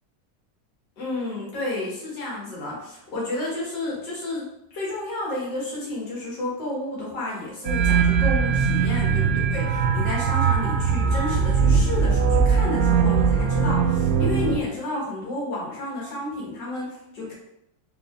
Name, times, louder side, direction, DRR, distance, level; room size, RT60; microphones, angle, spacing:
voice 1, 1.0-17.3, left 2 dB, 75° left, -5 dB, 2.2 m, -31 dB
sound 1, 7.7-14.6, right 6 dB, 80° right, 0.6 m, -20 dB
4.6 x 4.0 x 2.5 m, 0.81 s
omnidirectional pair, 1.9 m